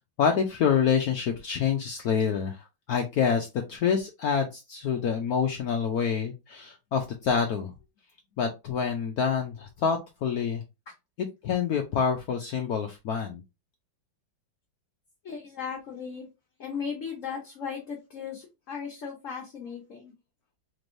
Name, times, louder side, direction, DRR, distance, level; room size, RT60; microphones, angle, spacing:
voice 1, 0.2-7.7 8.4-10.6 11.4-13.4, left 6 dB, 70° left, 4 dB, 0.9 m, -27 dB
voice 2, 15.2-16.3 16.6-20.1, left 6 dB, 50° left, -1 dB, 1.1 m, -36 dB
4.3 x 3.2 x 2.6 m, 0.24 s
omnidirectional pair, 2.1 m